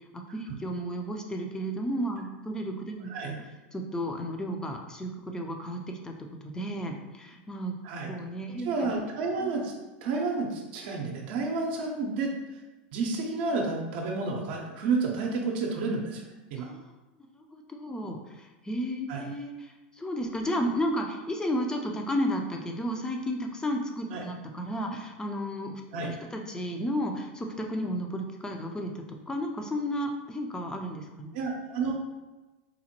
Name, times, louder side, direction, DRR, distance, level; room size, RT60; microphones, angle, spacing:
voice 1, 0.1-3.4 3.7-7.8 8.1-9.0 16.6-16.9 17.2-31.3, equal, 10° left, 3 dB, 0.5 m, -33 dB
voice 2, 8.6-9.7 10.0-12.3 12.9-16.2 16.5-16.7 19.1-19.3 24.1-24.2 25.9-26.1 31.3-31.9, right 3 dB, 65° right, 0 dB, 0.6 m, -30 dB
3.9 x 2.1 x 2.9 m, 1.1 s
hypercardioid pair, 110°, 6 cm